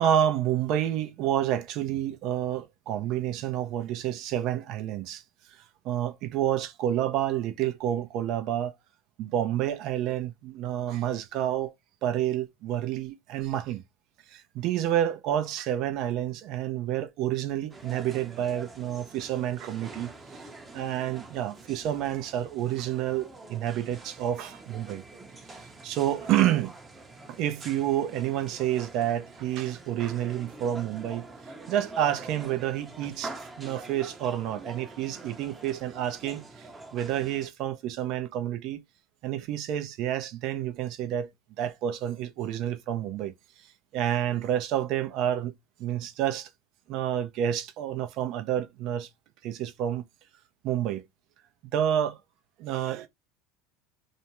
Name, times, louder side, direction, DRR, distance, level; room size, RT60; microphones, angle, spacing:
voice 1, 0.0-5.2 5.5-8.7 9.2-11.7 12.0-13.8 14.3-20.1 20.7-25.0 25.5-26.7 27.3-31.3 31.7-38.8 39.2-41.3 41.6-43.3 43.6-43.7 43.9-45.5 45.8-46.5 46.9-49.1 49.4-50.1 50.6-51.0 51.7-52.2 52.6-53.1, right 11 dB, 60° right, 0.6 m, -29 dB
sound 1, 17.7-37.5, right 2 dB, 20° right, 0.7 m, -45 dB
2.5 x 2.2 x 2.9 m
hypercardioid pair, 95°, 0 cm